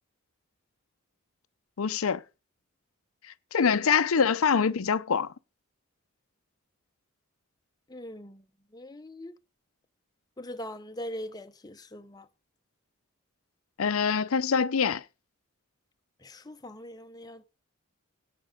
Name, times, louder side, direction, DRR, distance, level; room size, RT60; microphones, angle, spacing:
voice 1, 1.8-2.2 3.5-5.3 13.8-15.0, left 6 dB, 75° left, 0.6 m, -24 dB
voice 2, 7.9-8.4 8.7-9.3 10.4-12.3 16.2-17.5, left 1 dB, 20° left, 0.7 m, -41 dB
17.0 x 6.0 x 5.1 m
head